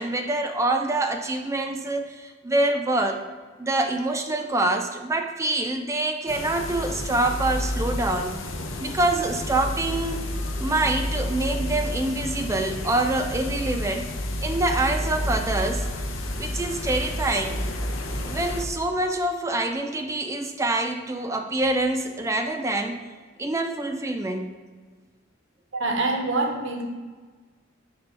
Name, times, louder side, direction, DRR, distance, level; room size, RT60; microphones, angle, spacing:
voice 1, 0.0-3.2 3.6-8.4 8.8-10.2 10.6-14.1 14.4-15.9 16.4-17.6 18.2-23.0 23.4-24.5, right 2 dB, 15° right, 5 dB, 0.3 m, -25 dB
sound 1, 6.3-18.6, left 1 dB, 90° left, 0.7 m, -30 dB
voice 2, 25.7-26.8, right 2 dB, 70° right, 2 dB, 0.7 m, -25 dB
5.2 x 3.5 x 5.5 m, 1.4 s
head